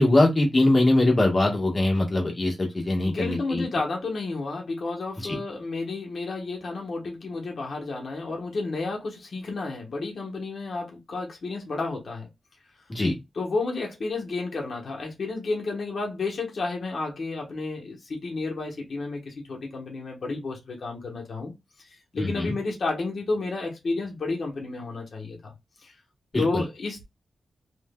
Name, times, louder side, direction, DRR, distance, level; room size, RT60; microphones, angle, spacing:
voice 1, 0.0-3.6 5.2-5.4 12.9-13.2 22.2-22.5 26.3-26.6, left 2 dB, 25° left, 1.2 m, -22 dB
voice 2, 3.0-12.3 13.3-21.5 21.8-25.5 25.8-25.9 26.4-27.0, left 3 dB, 55° left, 1.1 m, -31 dB
3.3 x 3.1 x 2.2 m
wide cardioid pair, 165°, 0 cm